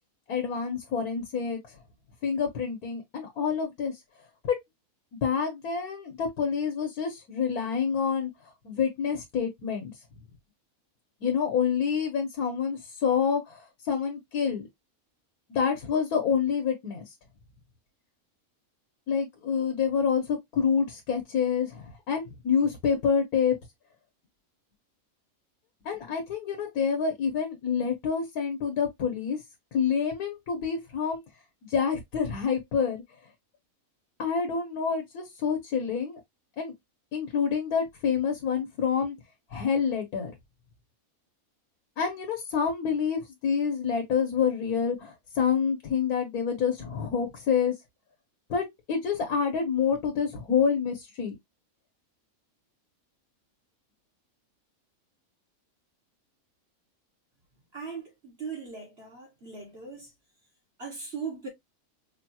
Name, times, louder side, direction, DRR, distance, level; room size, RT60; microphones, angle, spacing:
voice 1, 0.3-1.8 2.2-4.0 4.4-4.5 5.2-8.3 8.6-9.9 11.2-14.7 15.5-17.0 19.1-23.6 25.8-29.4 29.7-31.2 31.6-33.0 34.2-36.2 36.6-36.7 37.1-39.2 39.5-40.3 42.0-47.7 48.5-51.3, left 6 dB, 90° left, 1.5 m, -27 dB
voice 2, 57.7-60.1 60.8-61.5, right 5 dB, 45° right, 1.7 m, -39 dB
4.9 x 2.3 x 2.8 m
omnidirectional pair, 1.5 m